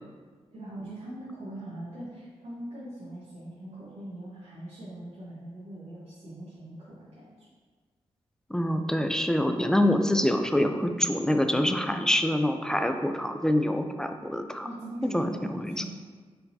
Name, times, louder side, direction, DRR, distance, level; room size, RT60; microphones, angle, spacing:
voice 1, 0.5-7.5 14.6-15.9, right 1 dB, 70° right, -10 dB, 1.2 m, -41 dB
voice 2, 8.5-14.7 15.1-15.7, left 1 dB, 5° left, 6 dB, 0.3 m, -25 dB
4.3 x 3.8 x 2.7 m, 1.5 s
cardioid pair, 55°, 11 cm